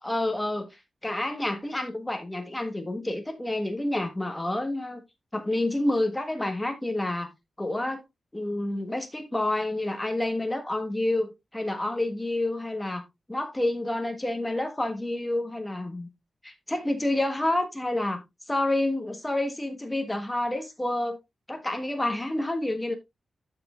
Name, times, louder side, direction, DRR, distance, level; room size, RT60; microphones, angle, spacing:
voice 1, 0.0-5.0 5.3-7.3 7.6-8.0 8.3-13.0 13.3-16.1 16.4-18.2 18.5-21.2 21.5-22.9, left 1 dB, 10° left, 1.3 m, -29 dB
13.5 x 5.2 x 2.4 m
wide cardioid pair, 165°, 0 cm